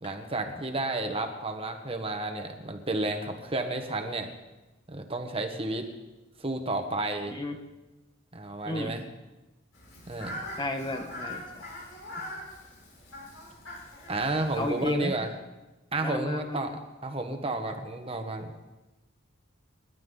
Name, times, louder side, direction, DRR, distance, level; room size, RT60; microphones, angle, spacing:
voice 1, 0.0-4.3 4.9-5.9 6.4-7.3 8.3-9.0 10.1-10.4 14.1-15.3 15.9-16.7 17.0-18.5, right 2 dB, 30° right, 5 dB, 1.4 m, -31 dB
Fowl, 9.7-14.9, left 1 dB, 85° left, 6.2 m, -42 dB
voice 2, 10.6-11.6 14.6-15.2 16.0-16.8, left 2 dB, 20° left, 5 dB, 1.2 m, -32 dB
28.5 x 12.0 x 4.0 m, 1.1 s
head